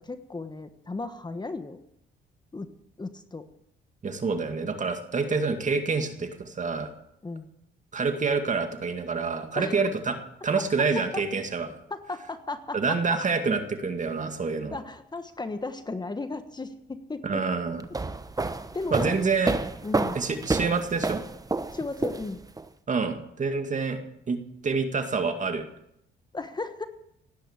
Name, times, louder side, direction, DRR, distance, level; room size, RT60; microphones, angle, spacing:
voice 1, 0.0-1.8 2.5-2.7 3.0-3.5 7.2-7.5 9.5-9.8 11.1-11.2 11.9-13.2 14.7-17.4 18.7-19.2 19.8-20.2 21.7-22.4 26.3-26.9, left 3 dB, 20° left, 9 dB, 1.2 m, -35 dB
voice 2, 4.0-6.9 7.9-10.2 10.4-11.7 12.7-14.8 17.2-17.8 18.9-19.5 20.1-21.2 22.9-24.0 24.3-25.7, right 4 dB, 40° right, 6 dB, 2.1 m, -27 dB
sound 1, 17.8-22.6, right 3 dB, 20° right, 1.0 m, -29 dB
17.0 x 10.0 x 7.4 m, 0.78 s
cardioid pair, 90°, 20 cm